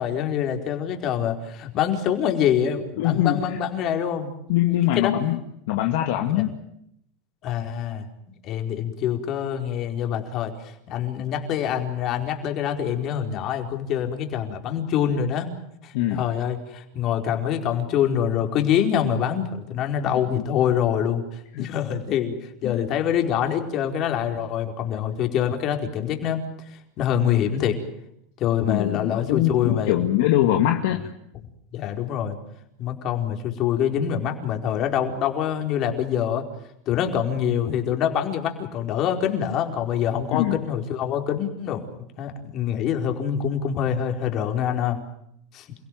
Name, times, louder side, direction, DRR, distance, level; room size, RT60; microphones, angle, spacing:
voice 1, 0.0-4.3 4.6-5.2 6.3-6.4 7.4-8.1 8.4-15.5 15.8-27.8 28.4-29.9 31.7-32.4 32.8-36.5 36.9-41.8 42.2-45.0 45.5-45.7, left 9 dB, 45° left, 4 dB, 4.6 m, -25 dB
voice 2, 3.0-3.6 4.5-5.4 5.7-6.6 15.9-16.2 20.3-20.4 21.5-21.7 22.6-22.8 28.7-31.0 40.3-40.6, left 13 dB, 70° left, 4 dB, 2.0 m, -23 dB
29.5 x 17.0 x 9.4 m, 0.75 s
hypercardioid pair, 110°, 0 cm